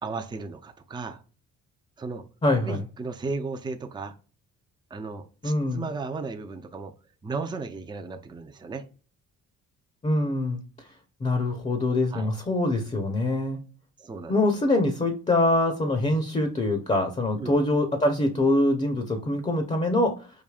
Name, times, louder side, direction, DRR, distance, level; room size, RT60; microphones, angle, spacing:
voice 1, 0.0-1.2 2.0-2.2 2.6-4.1 4.9-6.9 7.2-8.8 12.1-12.3 14.0-14.3 17.4-17.5, right 4 dB, 15° right, 0.4 m, -35 dB
voice 2, 2.4-2.8 5.4-5.9 10.0-10.6 11.2-13.6 14.3-20.3, left 1 dB, 20° left, 0.7 m, -24 dB
4.9 x 2.6 x 2.4 m
cardioid pair, 90°, 30 cm